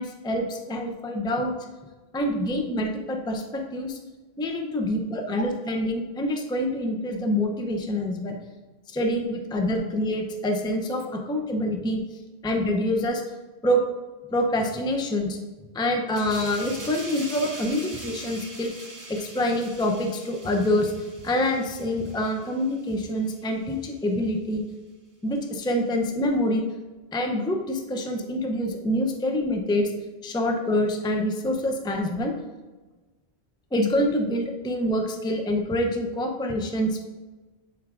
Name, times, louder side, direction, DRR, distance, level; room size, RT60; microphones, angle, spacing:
voice 1, 0.0-1.5 2.1-4.0 4.4-8.4 8.9-12.0 12.4-13.2 13.6-13.8 14.3-15.4 15.7-18.7 19.1-20.9 21.2-24.6 25.2-26.6 27.1-29.9 30.2-32.3 33.7-37.1, left 1 dB, 5° left, 3 dB, 0.4 m, -26 dB
sound 1, 16.2-23.3 23.7-23.9, right 2 dB, 20° right, 0.9 m, -42 dB
10.5 x 4.7 x 2.5 m, 1.2 s
omnidirectional pair, 1.1 m